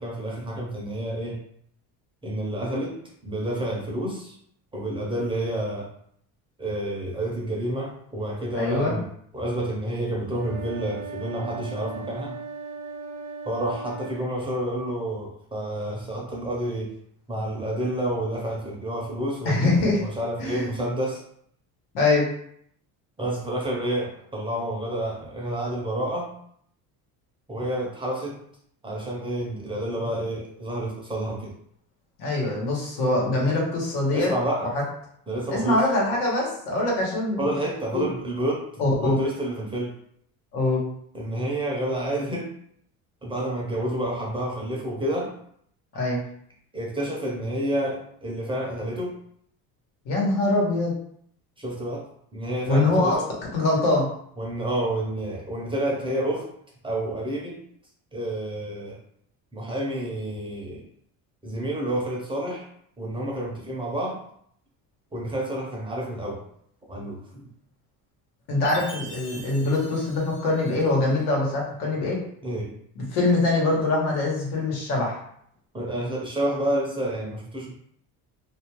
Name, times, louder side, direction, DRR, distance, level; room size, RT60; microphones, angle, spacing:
voice 1, 0.0-1.4 2.2-3.0 3.2-4.4 4.7-5.9 6.6-9.1 9.3-12.4 13.5-16.9 17.3-21.2 23.2-26.3 27.5-28.4 28.8-31.5 34.1-34.7 35.3-35.8 37.4-38.7 38.9-39.9 41.1-42.5 43.2-45.3 45.9-46.0 46.7-49.2 51.6-53.3 54.4-56.5 56.8-57.6 58.1-59.0 59.5-60.8 61.4-62.7 63.0-64.2 65.1-66.4 66.9-67.5 72.4-72.7 75.7-77.7, right 1 dB, 15° right, -3 dB, 0.6 m, -29 dB
voice 2, 8.5-9.0 19.4-20.0 20.4-20.7 21.9-22.2 32.2-34.3 34.6-34.8 35.5-37.5 37.9-38.1 38.8-39.2 40.5-40.8 45.9-46.2 50.0-50.9 52.7-53.1 53.5-54.1 68.5-72.2 72.9-75.2, left 2 dB, 80° left, -3 dB, 1.2 m, -23 dB
sound 1, 10.3-14.3, right 4 dB, 55° right, 0.6 m, -37 dB
Chime, 68.6-71.1, equal, 30° left, 0.8 m, -44 dB
2.5 x 2.3 x 3.0 m, 0.67 s
cardioid pair, 130°, 38 cm